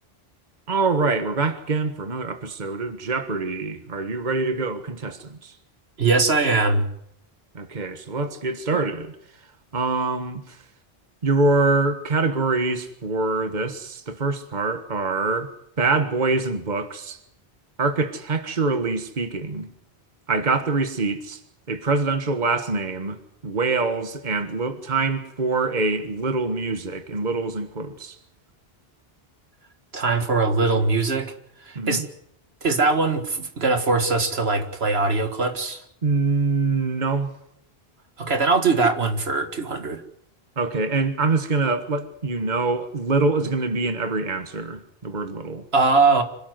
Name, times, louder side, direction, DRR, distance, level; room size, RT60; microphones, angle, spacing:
voice 1, 0.7-5.5 7.5-9.1 9.7-10.6 11.2-17.2 17.8-19.7 20.3-21.4 21.7-28.1 31.7-32.1 36.0-37.3 40.6-45.6, right 3 dB, 45° right, 1.6 m, -24 dB
voice 2, 6.0-6.9 29.9-31.3 31.6-32.0 32.6-35.8 38.2-40.0 45.7-46.2, right 3 dB, 75° right, 2.0 m, -21 dB
26.0 x 13.0 x 9.5 m
omnidirectional pair, 1.1 m